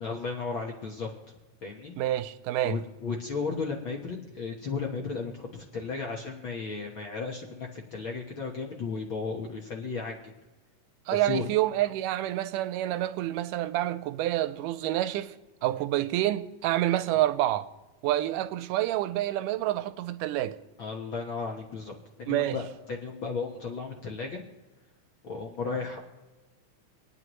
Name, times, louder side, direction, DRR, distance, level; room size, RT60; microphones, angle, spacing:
voice 1, 0.0-1.4 1.6-1.9 2.6-10.2 11.1-11.5 20.8-21.9 22.2-24.4 25.2-26.0, left 4 dB, 55° left, 1.5 m, -34 dB
voice 2, 2.0-2.8 11.1-15.3 15.6-17.7 18.0-20.6 22.3-22.6, right 14 dB, 85° right, 2.1 m, -28 dB
27.5 x 9.5 x 3.1 m
omnidirectional pair, 3.7 m